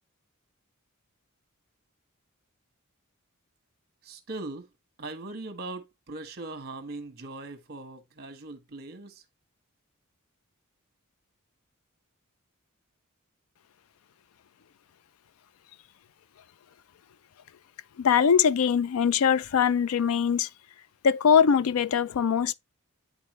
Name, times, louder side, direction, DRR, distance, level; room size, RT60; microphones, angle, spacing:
voice 1, 4.0-4.7 5.0-9.2, right 2 dB, 45° right, 1.4 m, -40 dB
voice 2, 18.0-20.5 21.0-22.5, left 7 dB, 75° left, 0.4 m, -22 dB
9.7 x 4.1 x 3.1 m
head